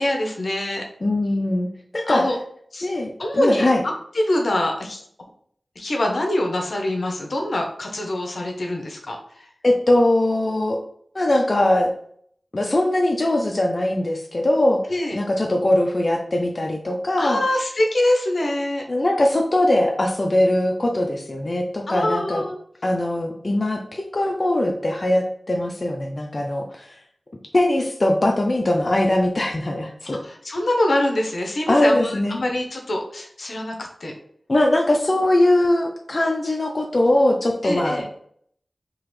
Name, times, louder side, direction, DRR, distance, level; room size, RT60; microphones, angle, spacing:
voice 1, 0.0-0.8 2.1-2.4 2.7-2.9 3.2-3.7 4.1-5.0 5.8-9.5 14.9-15.2 17.2-18.8 21.9-22.6 30.1-34.1 37.6-38.1, left 1 dB, 75° left, 2 dB, 0.7 m, -24 dB
voice 2, 1.0-1.7 1.9-2.3 2.8-3.8 9.6-10.8 11.1-11.9 12.5-14.8 15.1-17.4 18.9-22.4 22.8-27.0 27.5-30.2 31.7-32.4 34.5-38.2, left 1 dB, 45° left, 1 dB, 0.5 m, -21 dB
3.8 x 2.8 x 3.1 m, 0.64 s
wide cardioid pair, 50°, 0 cm